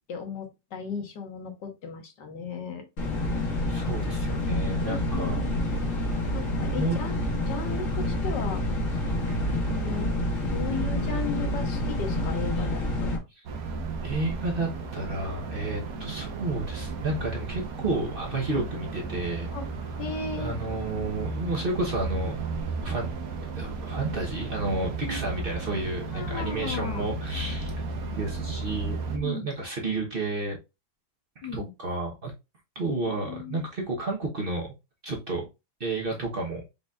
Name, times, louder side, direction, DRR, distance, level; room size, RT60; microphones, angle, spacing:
voice 1, 0.1-2.8 4.9-5.6 6.3-7.2 7.5-8.6 9.7-10.1 10.5-13.1 16.0-16.1 19.5-19.7 20.0-20.5 25.0-25.2 26.1-27.1 29.1-29.5 31.4-31.7 32.9-33.6, left 5 dB, 85° left, 1.8 m, -36 dB
sound 1, 3.0-13.2, left 1 dB, 50° left, 1.5 m, -28 dB
voice 2, 3.7-5.4 6.7-7.0 9.3-9.6 12.6-12.7 13.4-13.5 14.0-19.5 20.4-22.4 22.8-23.1 23.6-27.7 28.1-30.6 31.5-32.3 32.7-34.7 35.0-35.4 35.8-36.6, right 2 dB, 40° right, 1.0 m, -31 dB
sound 2, 13.4-29.2, right 3 dB, 60° right, 1.3 m, -34 dB
5.4 x 3.9 x 2.4 m
omnidirectional pair, 1.8 m